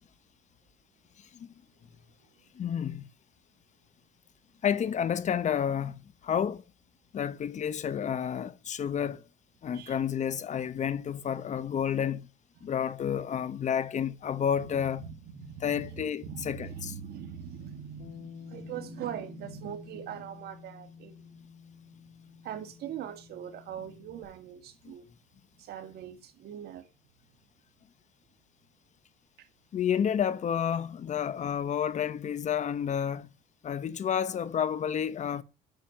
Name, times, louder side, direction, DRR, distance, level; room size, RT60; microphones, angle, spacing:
voice 1, 2.5-3.1 4.6-6.6 7.1-9.2 9.6-12.3 12.6-15.0 15.6-16.9 24.8-24.9 29.7-33.3 33.6-35.4, left 8 dB, 45° left, 1.0 m, -30 dB
voice 2, 14.5-21.3 22.4-25.1 25.6-26.9 29.4-29.5, right 9 dB, 70° right, 2.3 m, -41 dB
Bass guitar, 18.0-24.2, left 7 dB, 70° left, 5.2 m, -50 dB
9.1 x 7.4 x 7.4 m
cardioid pair, 110°, 17 cm